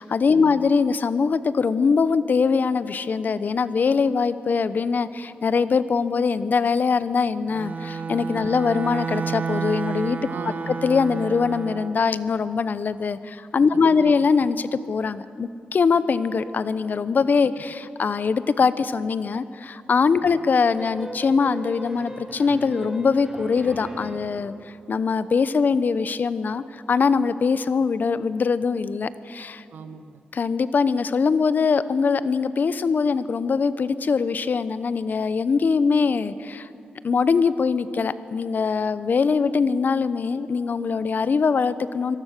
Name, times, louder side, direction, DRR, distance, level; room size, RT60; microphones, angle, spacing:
voice 1, 0.0-10.2 10.8-24.5 24.9-29.6 30.3-36.7 37.0-42.2, left 5 dB, 60° left, 15 dB, 0.9 m, -22 dB
Bowed string instrument, 7.5-12.0, right 5 dB, 45° right, 1.0 m, -30 dB
voice 2, 10.3-10.8 13.7-14.2 20.2-20.4 29.7-30.2, right 6 dB, 85° right, 10 dB, 1.1 m, -39 dB
sound 1, 20.8-24.4, right 1 dB, 15° right, 4.5 m, -37 dB
25.0 x 18.0 x 6.7 m, 2.7 s
cardioid pair, 60°, 3 cm